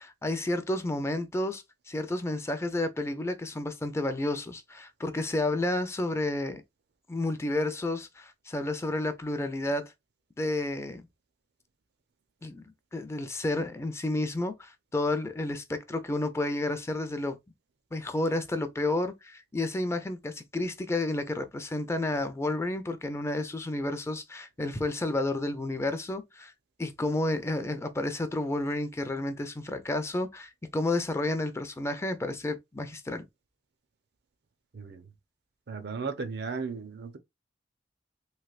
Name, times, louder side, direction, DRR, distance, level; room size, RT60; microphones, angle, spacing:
voice 1, 0.0-6.6 7.1-9.9 10.4-11.1 12.4-12.6 12.9-17.4 17.9-26.5 26.8-33.2, left 2 dB, 15° left, 0.4 m, -31 dB
voice 2, 34.7-35.1 35.7-37.2, right 5 dB, 65° right, 0.5 m, -35 dB
3.2 x 3.0 x 2.3 m
head